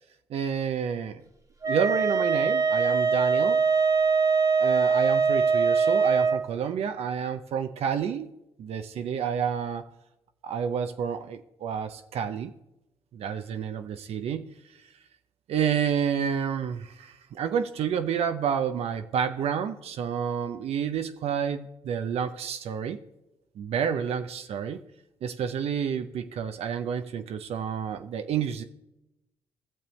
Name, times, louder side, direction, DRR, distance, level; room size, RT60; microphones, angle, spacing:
voice 1, 0.3-1.2 1.7-3.6 4.6-8.3 8.6-9.8 10.4-12.5 13.1-14.5 15.5-23.0 23.6-24.8 25.2-28.6, right 7 dB, 70° right, 8 dB, 0.6 m, -29 dB
Wind instrument woodwind instrument, 1.6-6.4, right 5 dB, 35° right, 1.6 m, -22 dB
17.0 x 6.8 x 3.1 m, 0.88 s
supercardioid pair, 60°, 11 cm